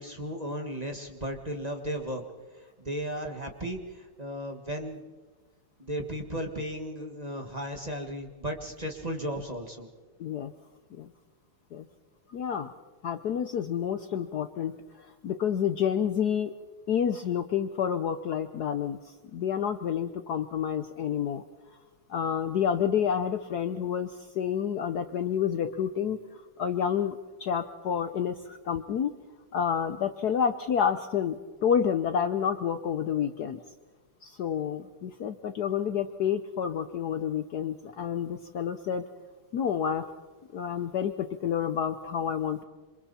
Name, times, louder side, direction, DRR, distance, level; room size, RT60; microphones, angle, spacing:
voice 1, 0.0-2.2 2.6-5.0 5.8-9.9, equal, 20° right, 3 dB, 1.6 m, -35 dB
voice 2, 10.2-10.5 11.0-11.1 11.7-11.9 12.3-12.7 13.0-14.8 15.2-16.5 16.9-19.0 19.3-21.4 22.1-26.2 26.6-29.1 29.5-33.6 34.2-39.0 39.5-40.0 40.5-42.6, left 8 dB, 60° left, 9 dB, 1.1 m, -29 dB
27.0 x 26.5 x 4.2 m, 1.3 s
omnidirectional pair, 2.3 m